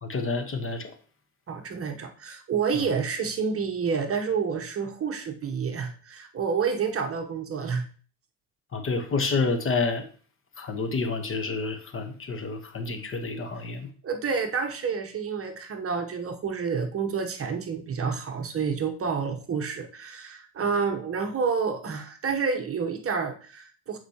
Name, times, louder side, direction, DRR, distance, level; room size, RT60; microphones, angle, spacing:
voice 1, 0.0-0.9 8.7-10.0 10.6-13.9, left 4 dB, 30° left, 7 dB, 1.1 m, -29 dB
voice 2, 1.5-7.9 14.0-24.0, right 5 dB, 35° right, 6 dB, 1.0 m, -29 dB
7.9 x 4.6 x 2.9 m, 0.41 s
supercardioid pair, 80°, 42 cm